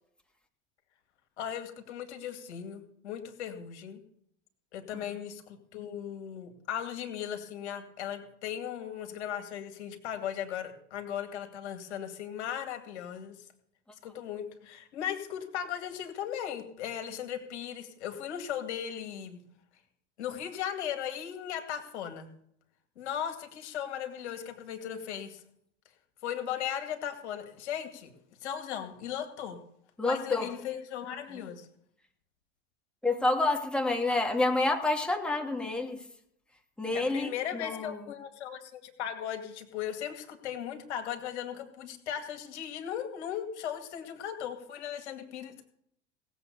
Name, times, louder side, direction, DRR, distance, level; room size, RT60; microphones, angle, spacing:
voice 1, 1.4-4.0 4.7-13.3 14.0-19.4 20.2-22.3 23.0-25.4 26.2-28.1 28.4-29.6 30.0-31.7 36.9-45.7, left 9 dB, 75° left, 7 dB, 2.2 m, -37 dB
voice 2, 30.0-30.5 33.0-36.0 36.8-38.0, left 2 dB, 5° left, 2 dB, 2.7 m, -28 dB
18.5 x 7.9 x 6.7 m, 0.68 s
hypercardioid pair, 85°, 34 cm